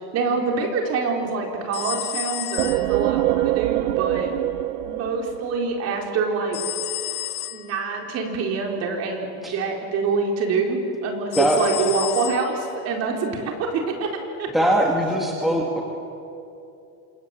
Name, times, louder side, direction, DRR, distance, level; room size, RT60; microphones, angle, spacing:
voice 1, 0.1-4.3 4.8-6.6 7.5-14.5, right 4 dB, 35° right, 1 dB, 4.3 m, -26 dB
sound 1, 1.7-3.3 6.5-7.8 11.3-12.7, left 14 dB, 25° left, 0.6 m, -31 dB
sound 2, 2.6-6.2, right 17 dB, 90° right, 0.7 m, -24 dB
voice 2, 14.5-15.8, equal, ahead, -1 dB, 2.0 m, -21 dB
28.0 x 27.0 x 7.9 m, 2.7 s
supercardioid pair, 165°, 44 cm